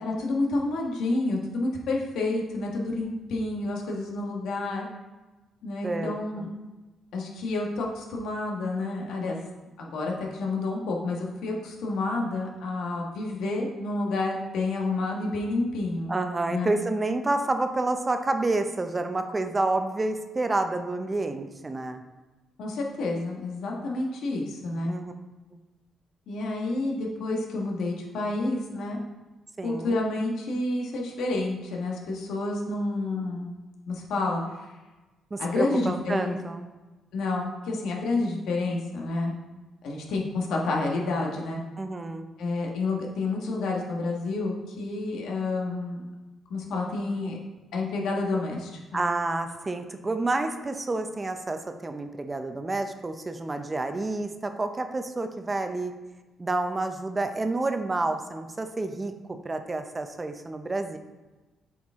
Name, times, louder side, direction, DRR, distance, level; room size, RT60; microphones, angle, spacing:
voice 1, 0.0-4.9 5.6-6.5 7.1-9.4 9.8-16.1 16.5-16.7 22.6-24.9 26.3-29.0 29.6-33.5 33.9-34.4 35.4-36.4 37.1-39.4 39.8-41.6 42.4-46.0 46.5-47.4 47.7-49.0, left 2 dB, 80° left, -1 dB, 1.5 m, -29 dB
voice 2, 5.8-6.5 16.1-22.0 24.8-25.1 29.6-30.0 35.3-36.7 41.8-42.3 48.9-55.9 56.4-59.1 59.4-61.0, right 2 dB, 25° right, 7 dB, 0.6 m, -29 dB
8.0 x 4.7 x 3.6 m, 1.2 s
cardioid pair, 90°, 0 cm